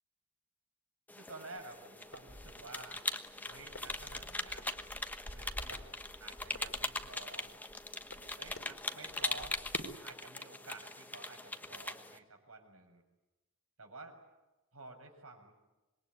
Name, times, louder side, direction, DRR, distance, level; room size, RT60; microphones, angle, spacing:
sound 1, 1.1-12.2, left 2 dB, 10° left, 1.2 m, -41 dB
voice 1, 1.1-3.0 3.4-4.7 5.3-5.9 6.2-7.6 8.4-9.6 10.0-13.0 13.8-14.2 14.7-15.5, right 3 dB, 90° right, 4 dB, 6.7 m, -51 dB
sound 2, 1.6-10.0, left 1 dB, 80° left, 3.6 m, -50 dB
26.5 x 22.0 x 9.6 m, 1.1 s
head